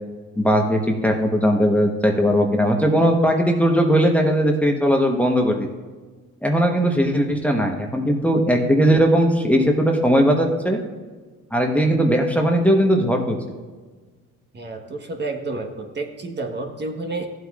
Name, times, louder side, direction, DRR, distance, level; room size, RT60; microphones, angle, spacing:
voice 1, 0.4-5.7 6.4-10.8 11.5-13.4, equal, 5° left, 1 dB, 1.1 m, -18 dB
voice 2, 14.5-17.3, right 2 dB, 35° right, 3 dB, 1.3 m, -30 dB
14.5 x 7.9 x 2.4 m, 1.4 s
cardioid pair, 90°, 30 cm